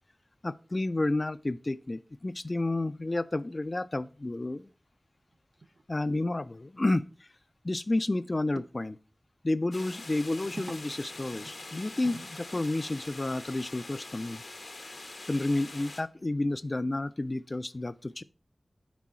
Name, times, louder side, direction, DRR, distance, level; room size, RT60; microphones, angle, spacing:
voice 1, 0.4-4.7 5.9-7.3 7.6-9.0 9.4-14.4 15.3-18.2, left 2 dB, 40° left, 0.3 m, -31 dB
sound 1, 5.3-5.8 6.1-6.2 7.0-7.1 7.4-7.5 8.5-8.7 10.0-13.0 14.9-15.0, right 3 dB, 65° right, 0.4 m, -48 dB
sound 2, 9.7-16.0, left 2 dB, 70° left, 0.9 m, -44 dB
6.1 x 4.6 x 4.2 m
wide cardioid pair, 65°, 0 cm